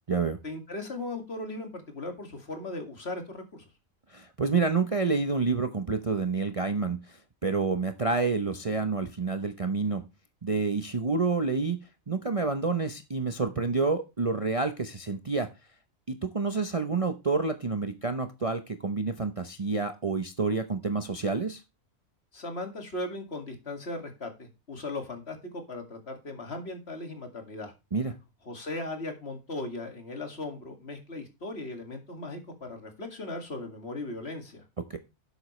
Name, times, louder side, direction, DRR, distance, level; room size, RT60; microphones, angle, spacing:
voice 1, 0.4-3.7 22.3-27.7 28.5-34.6, left 2 dB, 50° left, 5 dB, 2.5 m, -38 dB
voice 2, 4.1-10.0 10.4-15.5 16.1-21.6 27.9-28.1 34.9-35.0, right 4 dB, 30° right, 8 dB, 0.8 m, -28 dB
11.5 x 8.1 x 3.2 m, 0.26 s
omnidirectional pair, 1.4 m